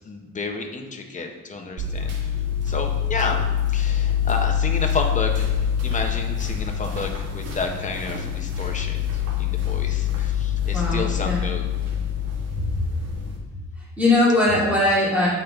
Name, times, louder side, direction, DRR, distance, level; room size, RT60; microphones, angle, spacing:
voice 1, 0.0-2.3 2.6-5.5 5.8-11.7, left 3 dB, 25° left, 3 dB, 0.7 m, -31 dB
sound 1, 1.8-13.4, left 9 dB, 50° right, 1.4 m, -25 dB
voice 2, 10.7-11.4 14.0-15.3, left 2 dB, 5° right, -8 dB, 2.3 m, -20 dB
8.2 x 5.8 x 3.5 m, 1.3 s
cardioid pair, 175°, 32 cm